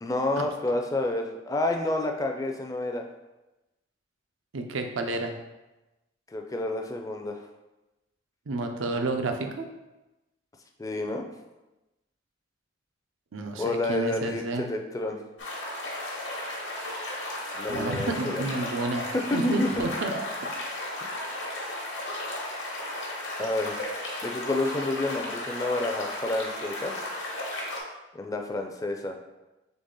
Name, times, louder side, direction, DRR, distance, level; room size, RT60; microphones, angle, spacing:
voice 1, 0.0-3.0 6.3-7.4 10.8-11.2 13.6-15.2 17.5-18.4 19.1-19.9 23.4-23.8 24.2-26.9 28.1-29.2, left 2 dB, 20° left, 3 dB, 0.4 m, -29 dB
voice 2, 4.5-5.4 8.5-9.7 13.3-14.6 17.7-19.1 19.3-20.1, right 2 dB, 90° right, 5 dB, 0.5 m, -30 dB
sound 1, 15.4-27.8, left 1 dB, 75° left, 1.0 m, -34 dB
4.0 x 3.2 x 3.7 m, 1.0 s
head